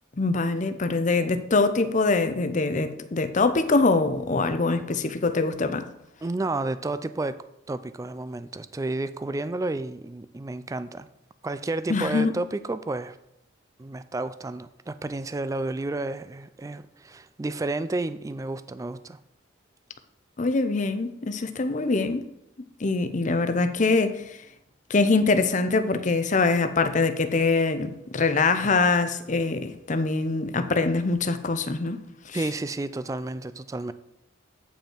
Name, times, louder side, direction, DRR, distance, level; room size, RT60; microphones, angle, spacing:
voice 1, 0.2-5.9 11.9-12.3 20.4-22.2 22.8-24.2 24.9-32.0 32.3-32.4, left 3 dB, 40° left, 0.6 m, -23 dB
voice 2, 6.2-11.1 11.4-13.2 13.8-19.2 32.3-33.9, right 2 dB, 15° right, 0.3 m, -31 dB
8.9 x 5.5 x 4.4 m
head